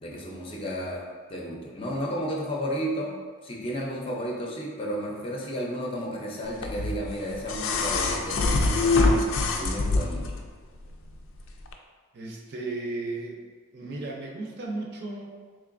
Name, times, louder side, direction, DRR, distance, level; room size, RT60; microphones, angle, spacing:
voice 1, 0.0-1.0 1.3-9.0 9.5-10.4, equal, 25° left, -2 dB, 0.5 m, -33 dB
sound 1, 6.6-10.4 11.7-11.8, left 3 dB, 85° left, 0.4 m, -24 dB
voice 2, 12.1-13.5 13.7-15.4, right 2 dB, 55° right, 0 dB, 0.5 m, -35 dB
3.6 x 3.2 x 2.5 m, 1.5 s
head